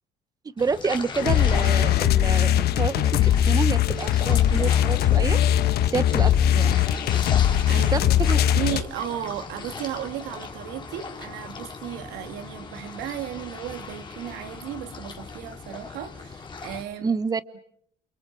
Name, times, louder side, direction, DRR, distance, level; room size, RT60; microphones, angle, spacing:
sound 1, 0.6-16.8, left 4 dB, 25° left, 3.6 m, -39 dB
voice 1, 0.6-5.4 5.9-6.7 7.8-8.4 17.0-17.4, right 5 dB, 20° right, 1.0 m, -28 dB
sound 2, 1.2-8.8, left 11 dB, 70° left, 1.2 m, -20 dB
voice 2, 7.2-17.1 17.5-17.6, right 11 dB, 90° right, 2.5 m, -35 dB
29.0 x 28.5 x 6.1 m
cardioid pair, 110°, 17 cm